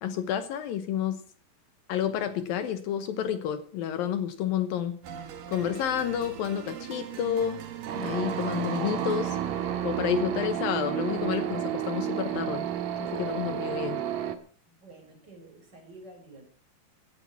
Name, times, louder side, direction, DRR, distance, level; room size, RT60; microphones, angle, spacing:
voice 1, 0.0-1.2 1.9-5.0 5.5-7.6 7.9-9.4 9.8-12.6 13.0-14.0, left 9 dB, 75° left, 12 dB, 2.7 m, -30 dB
Eerie Piano Intro & Buildup (Without Rev-Crash), 5.0-11.9, right 9 dB, 85° right, 3.8 m, -42 dB
sound 1, 7.9-14.4, right 10 dB, 60° right, 2.2 m, -31 dB
voice 2, 14.7-16.5, right 2 dB, 25° right, 1 dB, 5.5 m, -50 dB
16.0 x 11.5 x 5.9 m, 0.40 s
omnidirectional pair, 4.4 m